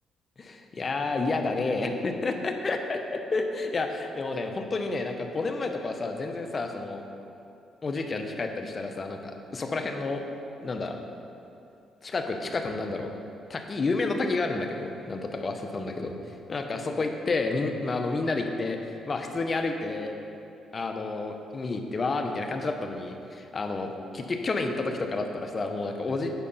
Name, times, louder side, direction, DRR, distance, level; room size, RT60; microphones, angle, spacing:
voice 1, 0.4-7.0 7.8-10.2 10.6-11.0 12.0-13.1 13.5-16.1 16.5-20.2 20.7-26.3, left 3 dB, 35° left, 4 dB, 0.8 m, -30 dB
9.1 x 4.8 x 5.6 m, 2.7 s
cardioid pair, 90°, 0 cm